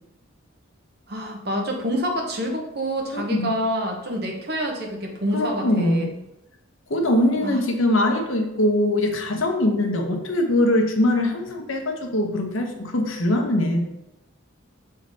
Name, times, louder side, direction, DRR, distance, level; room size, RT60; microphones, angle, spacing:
voice 1, 1.1-6.1 7.4-7.6, equal, 50° right, 2 dB, 1.0 m, -27 dB
voice 2, 3.1-3.5 5.3-6.1 6.9-13.8, left 1 dB, 75° left, 3 dB, 1.0 m, -22 dB
6.4 x 3.9 x 4.1 m, 0.89 s
head